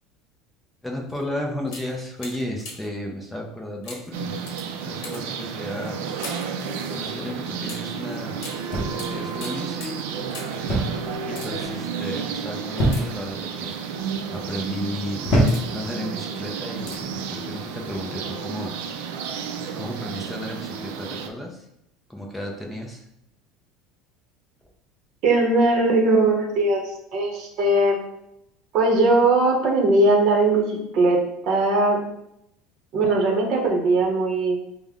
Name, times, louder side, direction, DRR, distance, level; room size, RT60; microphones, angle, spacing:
voice 1, 0.8-4.3 4.8-6.0 6.9-8.4 8.9-10.0 11.3-15.3 15.7-21.7 22.1-23.1, left 1 dB, 5° left, 0 dB, 0.5 m, -34 dB
sound 1, 1.1-1.2 1.6-3.0 3.8-6.6 7.6-10.7 11.2-11.8 12.8-13.6 14.3-14.5 15.1-15.9 16.8-17.2 17.5-17.6, left 3 dB, 55° left, 0.9 m, -42 dB
sound 2, 4.1-21.3, right 6 dB, 80° right, 0.4 m, -32 dB
sound 3, 8.7-9.2 10.7-11.1 11.4-11.8 12.8-13.3 14.0-14.4 15.2-15.9 16.8-17.1, equal, 30° left, 0.9 m, -23 dB
voice 2, 25.2-28.0 28.7-32.0 32.9-34.6, right 2 dB, 40° right, 0 dB, 0.9 m, -20 dB
5.2 x 2.1 x 3.5 m, 0.80 s
cardioid pair, 180°, 0 cm